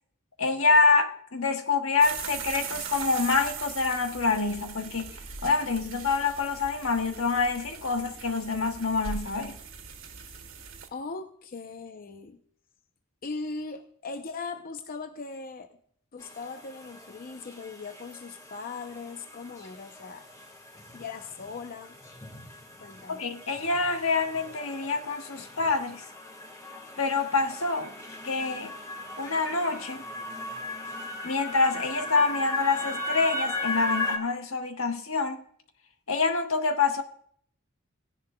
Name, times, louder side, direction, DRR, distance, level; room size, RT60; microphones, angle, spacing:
voice 1, 0.4-5.1 5.4-9.6 23.1-26.0 27.0-27.9 28.2-28.7 29.2-30.0 31.2-35.4 36.1-37.0, left 4 dB, 80° left, 1.3 m, -26 dB
sound 1, 2.0-10.9, right 6 dB, 70° right, 1.6 m, -40 dB
voice 2, 10.9-12.4 13.2-15.7 16.1-20.3 20.9-22.0 22.8-23.2, left 4 dB, 45° left, 0.6 m, -39 dB
sound 2, 16.2-34.2, left 2 dB, 15° left, 1.6 m, -38 dB
17.0 x 10.5 x 2.2 m
head